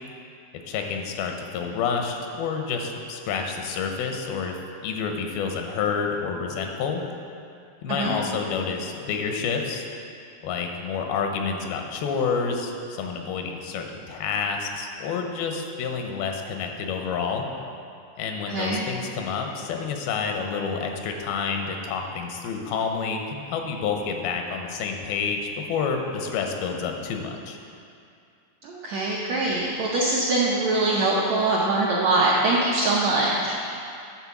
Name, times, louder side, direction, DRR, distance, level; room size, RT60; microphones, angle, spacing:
voice 1, 0.7-4.6 4.8-7.0 7.8-9.9 10.4-12.7 13.0-17.5 18.2-27.6, left 5 dB, 85° left, 3 dB, 2.7 m, -29 dB
voice 2, 18.5-18.8 28.6-33.6, right 2 dB, 80° right, -5 dB, 1.5 m, -23 dB
10.5 x 4.2 x 7.1 m, 2.5 s
omnidirectional pair, 4.2 m